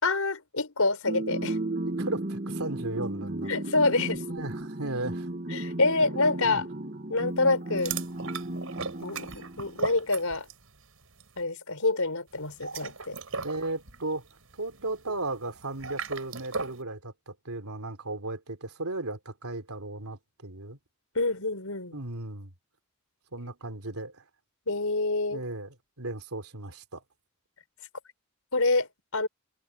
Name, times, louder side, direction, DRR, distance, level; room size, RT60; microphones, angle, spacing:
voice 1, 0.0-1.6 3.5-4.2 5.5-6.7 7.1-7.9 9.0-10.5 11.4-13.2 21.1-22.0 24.7-25.4 28.5-29.3, left 3 dB, 80° left, 4.6 m, -27 dB
sound 1, 1.1-9.8, right 1 dB, 40° right, 1.5 m, -34 dB
voice 2, 1.8-3.5 4.3-5.3 6.4-6.6 13.4-14.3 14.6-20.8 21.9-22.5 23.3-24.2 25.3-27.0, right 2 dB, 90° right, 3.2 m, -35 dB
sound 2, 7.8-10.7 11.0-11.3 12.4-16.8, right 4 dB, 70° right, 5.4 m, -37 dB
head